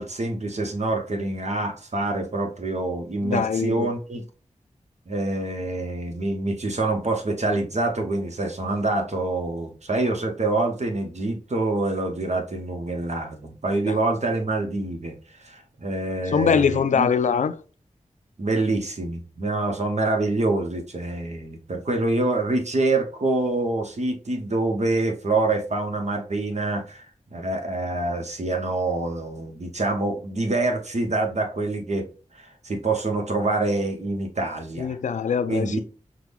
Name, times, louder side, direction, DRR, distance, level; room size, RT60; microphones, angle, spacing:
voice 1, 0.0-4.2 5.1-15.2 15.4-17.1 18.4-27.0 27.3-32.1 32.3-35.0 35.5-35.8, right 2 dB, 60° right, 1.0 m, -26 dB
voice 2, 3.2-3.9 13.9-14.0 16.3-17.6 34.8-35.8, left 6 dB, 70° left, 0.4 m, -23 dB
5.8 x 2.3 x 3.4 m
cardioid pair, 45°, 13 cm